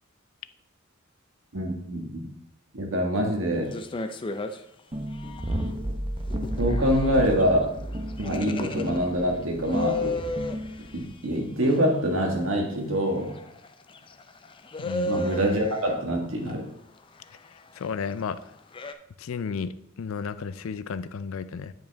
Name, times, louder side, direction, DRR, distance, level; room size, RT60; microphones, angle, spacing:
voice 1, 1.5-2.2 2.7-3.7 6.6-7.7 8.2-10.2 10.9-13.4 15.1-16.7, equal, 75° right, 2 dB, 1.5 m, -25 dB
sound 1, 3.7-4.6 5.1-5.7 6.3-9.1 9.4-10.7 11.6-11.9 13.2-15.9 16.5-16.6 18.7-18.9, left 2 dB, 25° left, 0.4 m, -33 dB
sound 2, 4.9-11.1, equal, 25° right, 0.7 m, -32 dB
voice 2, 14.8-15.2 17.8-18.4 19.2-21.7, left 5 dB, 85° left, 13 dB, 0.4 m, -33 dB
9.0 x 5.3 x 3.4 m, 0.75 s
head